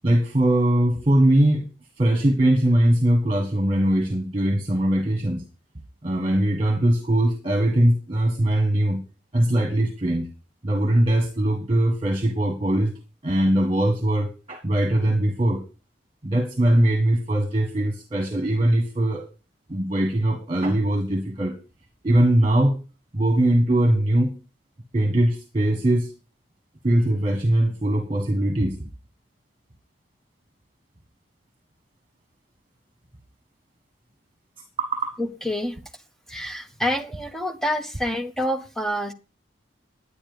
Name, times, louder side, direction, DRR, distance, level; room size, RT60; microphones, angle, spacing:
voice 1, 0.0-1.6 2.0-5.4 6.0-9.0 9.3-10.3 10.6-12.9 13.2-15.6 16.2-19.3 19.7-21.6 22.0-22.8 23.1-24.3 24.9-26.1 26.8-28.9 34.8-35.2, right 1 dB, 30° right, 1.6 m, -21 dB
voice 2, 35.2-35.8 36.3-39.1, equal, ahead, 1.1 m, -27 dB
10.0 x 10.0 x 5.2 m
head